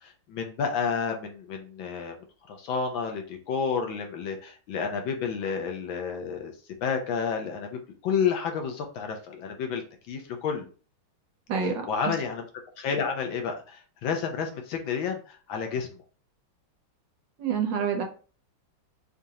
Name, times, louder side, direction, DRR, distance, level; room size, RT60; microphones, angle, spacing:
voice 1, 0.0-2.1 2.5-6.5 6.8-9.8 10.1-10.7 11.6-12.5 12.8-15.9, left 6 dB, 75° left, 4 dB, 1.5 m, -30 dB
voice 2, 11.5-12.1 17.4-18.0, right 6 dB, 70° right, 4 dB, 1.3 m, -28 dB
5.1 x 2.5 x 2.8 m, 0.37 s
omnidirectional pair, 2.2 m